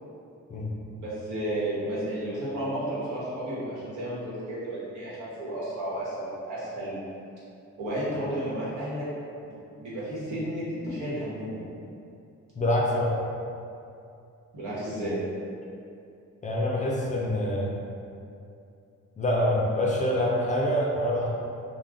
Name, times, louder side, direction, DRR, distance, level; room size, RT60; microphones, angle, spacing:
voice 1, 1.0-7.0 7.8-9.0 9.4-11.7 14.5-15.2, right 1 dB, 80° right, -9 dB, 1.1 m, -32 dB
voice 2, 12.5-13.2 16.4-17.7 19.2-21.3, left 1 dB, 25° left, -3 dB, 0.4 m, -25 dB
2.4 x 2.2 x 3.5 m, 2.6 s
cardioid pair, 90°, 30 cm